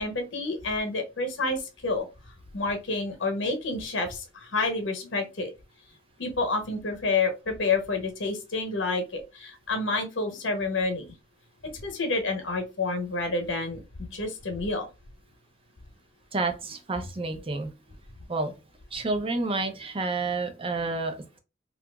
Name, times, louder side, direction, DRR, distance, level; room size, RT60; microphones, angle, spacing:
voice 1, 0.0-2.1 2.5-5.5 6.2-11.1 11.6-13.8 14.1-14.9, left 3 dB, 70° left, 0.9 m, -29 dB
voice 2, 16.3-17.7 18.3-18.5 18.9-21.4, right 3 dB, 30° right, 0.6 m, -29 dB
2.9 x 2.4 x 3.4 m
head